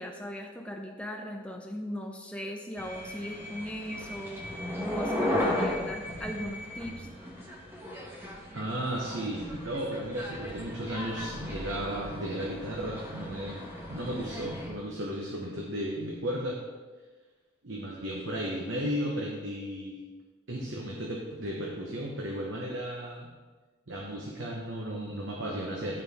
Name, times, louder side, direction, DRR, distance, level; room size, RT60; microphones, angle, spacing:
voice 1, 0.0-4.4 4.8-7.1, equal, 5° left, 1 dB, 0.7 m, -38 dB
sound 1, 2.8-14.7, left 1 dB, 10° right, 1.2 m, -36 dB
voice 2, 8.5-13.6 13.9-16.6 17.6-20.0 20.5-23.3 23.9-26.0, equal, 70° right, -2 dB, 1.1 m, -34 dB
13.0 x 4.5 x 3.6 m, 1.3 s
head